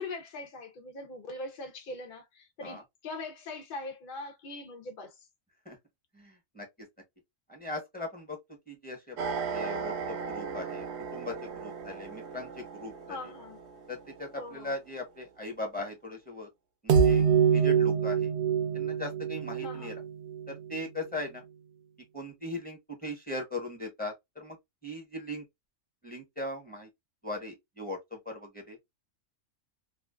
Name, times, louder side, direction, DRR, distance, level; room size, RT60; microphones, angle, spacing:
voice 1, 0.0-5.2 13.1-13.6 14.3-14.8 19.6-20.0, left 2 dB, 60° left, 0.5 m, -41 dB
voice 2, 6.1-6.7 7.5-8.4 8.7-9.2 9.5-10.9 11.1-13.2 13.9-16.5 16.8-17.2 17.5-18.3 18.7-19.9 20.5-21.4 22.1-24.6 24.8-25.4 26.0-26.9 27.2-28.8, left 2 dB, 10° left, 0.7 m, -39 dB
sound 1, 9.2-13.5 16.9-20.8, right 7 dB, 65° right, 0.7 m, -28 dB
2.4 x 2.3 x 2.2 m
omnidirectional pair, 1.4 m